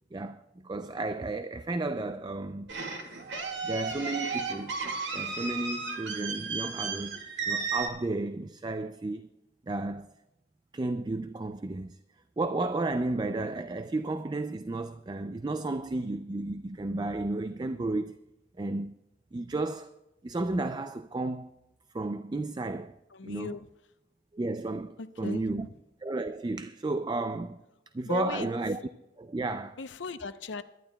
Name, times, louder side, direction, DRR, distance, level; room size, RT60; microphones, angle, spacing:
voice 1, 0.1-2.7 3.6-4.7 5.1-9.3 9.7-10.1 10.7-12.0 12.4-18.2 18.6-19.0 19.3-19.9 20.2-21.5 21.9-23.0 23.2-23.6 24.3-25.7 26.0-27.6 27.9-28.8 29.2-29.8, right 2 dB, 25° right, 0.4 m, -33 dB
sound 1, 2.7-7.9, right 4 dB, 85° right, 1.9 m, -34 dB
voice 2, 23.1-23.7 25.0-25.7 28.0-28.5 29.8-30.6, left 4 dB, 90° left, 0.7 m, -38 dB
23.5 x 12.0 x 2.3 m
head